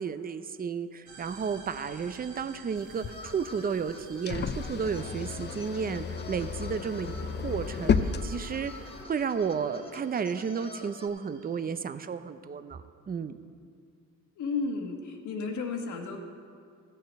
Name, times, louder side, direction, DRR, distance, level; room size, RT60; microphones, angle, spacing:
voice 1, 0.0-7.1 7.4-8.7 9.1-13.4, right 6 dB, 30° right, 11 dB, 0.6 m, -32 dB
sound 1, 1.1-11.7, right 4 dB, 85° right, 1.7 m, -54 dB
sound 2, 2.8-9.0, left 5 dB, 35° left, 0.6 m, -33 dB
sound 3, 3.1-11.1, left 2 dB, 20° left, 1.1 m, -48 dB
voice 2, 14.4-16.2, left 4 dB, 75° left, 3 dB, 1.5 m, -33 dB
15.0 x 6.6 x 5.3 m, 2.3 s
cardioid pair, 90°, 30 cm